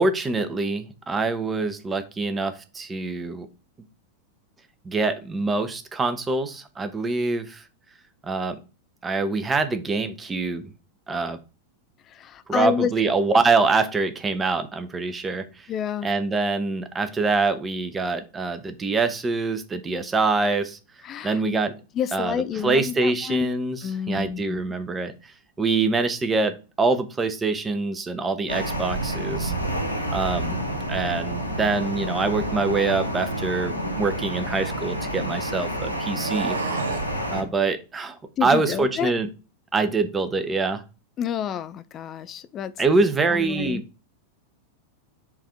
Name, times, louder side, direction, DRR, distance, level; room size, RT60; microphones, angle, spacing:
voice 1, 0.0-3.5 4.8-7.6 8.2-8.6 9.0-10.7 11.1-11.4 12.5-15.7 16.0-20.8 21.2-21.7 22.1-22.3 22.6-23.8 24.1-25.1 25.6-29.5 30.1-30.6 30.9-36.6 37.3-39.3 39.7-40.8 42.8-43.8, right 3 dB, 15° right, 0.7 m, -24 dB
voice 2, 12.0-12.9 15.7-16.1 21.0-21.4 21.9-23.5 23.8-24.6 38.4-39.1 41.2-43.8, left 8 dB, 30° left, 0.4 m, -29 dB
sound 1, 28.5-37.4, right 1 dB, 85° left, 0.8 m, -29 dB
sound 2, 33.9-35.4 36.1-37.2, right 6 dB, 65° right, 0.6 m, -33 dB
4.6 x 2.6 x 3.5 m
figure-of-eight pair, 90°, 0 cm